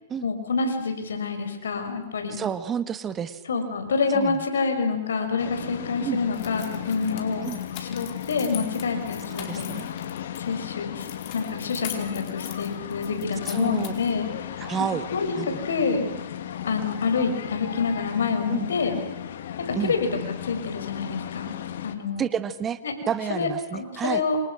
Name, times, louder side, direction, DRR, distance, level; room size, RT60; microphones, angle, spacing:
voice 1, 0.2-2.4 3.5-7.5 7.8-9.7 10.4-14.3 15.1-16.1 16.7-19.0 19.7-20.1 20.4-21.6 21.8-22.3 22.8-22.9 23.3-24.4, left 4 dB, 85° left, 6 dB, 5.5 m, -27 dB
voice 2, 2.3-3.4 4.1-4.4 6.0-6.2 7.4-7.6 9.3-9.9 13.4-13.9 14.6-15.0 15.4-15.6 18.5-18.7 19.8-19.9 22.2-22.8 23.1-24.2, right 8 dB, 20° right, 13 dB, 1.4 m, -30 dB
sound 1, 5.4-22.0, left 10 dB, 70° left, 2.1 m, -36 dB
sound 2, 6.3-10.4 11.0-14.2, left 11 dB, 45° left, 4.6 m, -41 dB
28.0 x 26.5 x 6.2 m, 1.1 s
hypercardioid pair, 135°, 0 cm